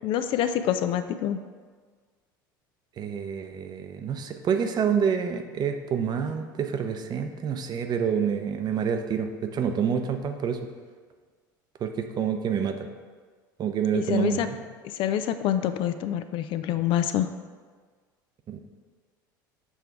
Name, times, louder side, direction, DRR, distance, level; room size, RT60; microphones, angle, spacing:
voice 1, 0.0-1.4 13.9-14.5 15.0-17.3, left 10 dB, 50° left, 10 dB, 0.4 m, -26 dB
voice 2, 3.0-10.7 11.8-12.9 13.6-14.6 18.5-18.6, right 7 dB, 40° right, 6 dB, 0.6 m, -27 dB
7.1 x 3.4 x 4.6 m, 1.5 s
hypercardioid pair, 75°, 11 cm